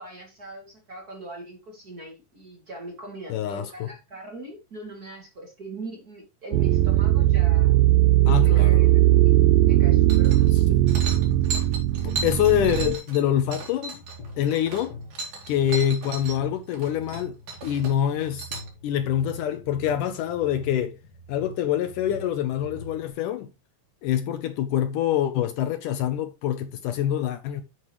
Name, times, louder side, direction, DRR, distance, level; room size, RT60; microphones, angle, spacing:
voice 1, 0.0-7.8 8.2-10.5, right 2 dB, 30° right, 2.4 m, -41 dB
voice 2, 3.3-3.9 8.3-8.7 12.0-14.0 14.4-15.0 15.5-17.4 17.6-18.5 18.8-21.0 21.3-23.5 24.0-27.6, left 10 dB, 75° left, 2.1 m, -25 dB
sound 1, 6.5-13.0, right 15 dB, 80° right, 2.2 m, -19 dB
sound 2, 9.1-23.1, left 2 dB, 55° left, 2.8 m, -44 dB
sound 3, 10.1-10.6 10.9-16.4 16.7-17.2 17.5-18.7, right 4 dB, 60° right, 3.7 m, -35 dB
9.7 x 8.0 x 3.0 m
omnidirectional pair, 4.1 m